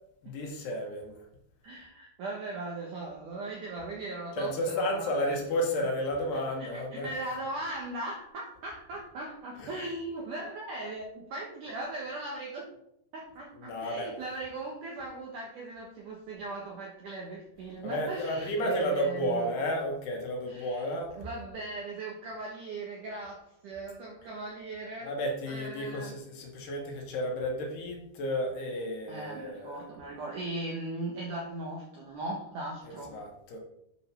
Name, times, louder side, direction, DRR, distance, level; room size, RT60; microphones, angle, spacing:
voice 1, 0.2-1.2 4.4-7.1 9.6-9.8 13.6-14.2 17.8-21.3 25.0-29.8 32.8-33.6, equal, 65° left, 0 dB, 3.4 m, -32 dB
voice 2, 1.6-5.3 6.3-12.7 13.1-19.5 20.5-25.2 25.5-26.2 29.1-33.2, right 2 dB, 70° right, -1 dB, 2.0 m, -38 dB
9.5 x 5.3 x 6.0 m, 0.76 s
omnidirectional pair, 5.4 m